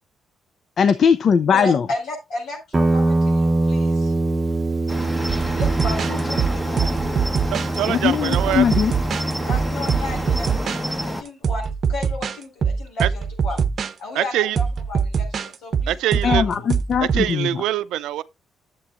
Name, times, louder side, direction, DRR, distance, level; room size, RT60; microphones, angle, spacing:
voice 1, 0.8-1.9 7.9-8.9 16.2-17.6, left 7 dB, 55° left, 0.4 m, -19 dB
voice 2, 1.5-4.1 5.5-7.0 9.4-13.6 14.0-16.7, left 2 dB, 75° left, 4.9 m, -34 dB
Guitar, 2.7-10.6, right 2 dB, 25° right, 0.9 m, -24 dB
Cricket, 4.9-11.2, equal, 5° left, 1.2 m, -28 dB
sound 1, 5.3-7.8 8.3-10.8 11.3-13.9 14.6-17.3, right 6 dB, 55° right, 0.7 m, -23 dB
voice 3, 7.5-8.6 13.0-13.1 14.1-14.6 15.9-16.4 17.1-18.2, right 13 dB, 90° right, 0.4 m, -24 dB
11.5 x 7.5 x 2.5 m
cardioid pair, 90°, 0 cm